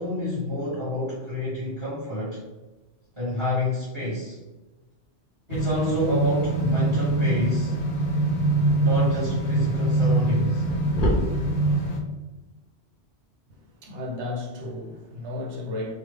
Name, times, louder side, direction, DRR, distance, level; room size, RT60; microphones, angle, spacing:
voice 1, 0.0-2.4 3.1-4.4 5.5-7.8 8.8-10.6, left 1 dB, 30° right, -11 dB, 1.1 m, -28 dB
sound 1, 5.5-12.0, right 2 dB, 60° left, 0.6 m, -23 dB
voice 2, 13.8-16.0, left 2 dB, 75° right, 1 dB, 1.0 m, -33 dB
3.2 x 2.0 x 3.1 m, 1.1 s
omnidirectional pair, 1.2 m